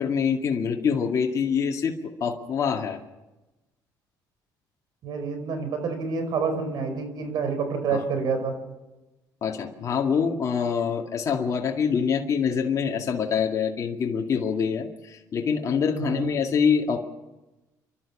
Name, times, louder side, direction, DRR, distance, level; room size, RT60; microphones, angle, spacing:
voice 1, 0.0-1.9 2.2-3.0 7.9-8.0 9.4-17.0, left 6 dB, 45° left, 1 dB, 2.2 m, -25 dB
voice 2, 5.0-8.5 16.0-16.3, right 5 dB, 60° right, 8 dB, 5.0 m, -28 dB
30.0 x 12.5 x 7.3 m, 1.1 s
cardioid pair, 105°, 8 cm